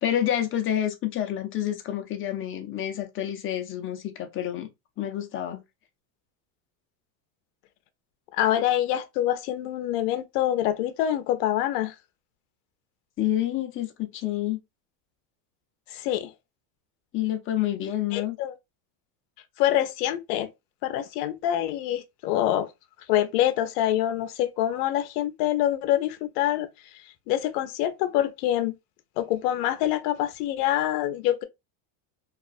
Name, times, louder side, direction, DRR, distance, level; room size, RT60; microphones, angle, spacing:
voice 1, 0.0-4.7 5.0-5.6 13.2-14.6 17.1-18.4, left 11 dB, 30° left, 0.5 m, -28 dB
voice 2, 8.3-11.9 15.9-16.3 18.1-18.5 19.6-20.5 20.8-22.7 23.1-26.7 27.3-28.8 29.2-31.4, left 12 dB, 85° left, 0.6 m, -25 dB
2.4 x 2.3 x 2.4 m
supercardioid pair, 130°, 46 cm